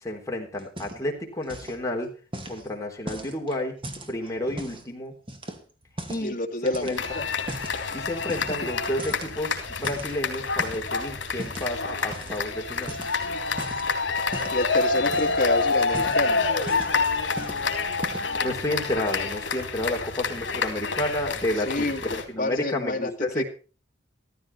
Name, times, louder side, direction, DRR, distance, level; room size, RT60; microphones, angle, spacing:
voice 1, 0.0-2.1 2.5-3.8 4.1-5.2 6.1-7.2 7.9-13.0 18.4-23.4, left 1 dB, 15° left, 1 dB, 3.7 m, -31 dB
sound 1, 0.6-1.2 1.4-1.8 2.3-4.9 5.3-6.3 6.7-7.8 8.3-8.7 9.0-10.9 11.4-11.7 12.1-12.4 12.7-13.9 14.3-14.6 15.0-15.5 15.8-17.0 17.4-17.6 17.9-18.4, right 1 dB, 30° right, 2.3 m, -38 dB
voice 2, 6.2-7.2 8.6-8.7 14.5-16.4 21.6-22.0 22.4-23.4, left 1 dB, 45° left, 5 dB, 2.1 m, -28 dB
sound 2, 7.0-22.2, left 4 dB, 70° left, 3.3 m, -28 dB
15.0 x 15.0 x 4.4 m, 0.36 s
head